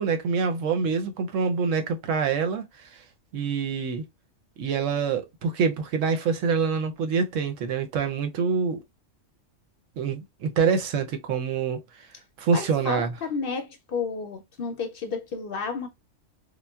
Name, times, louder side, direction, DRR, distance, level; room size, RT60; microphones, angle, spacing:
voice 1, 0.0-2.9 3.3-4.0 4.6-8.8 10.0-11.8 12.4-13.2, right 5 dB, 90° right, 1.0 m, -26 dB
voice 2, 12.5-15.9, left 5 dB, 60° left, 0.6 m, -31 dB
3.8 x 2.1 x 2.2 m
omnidirectional pair, 1.3 m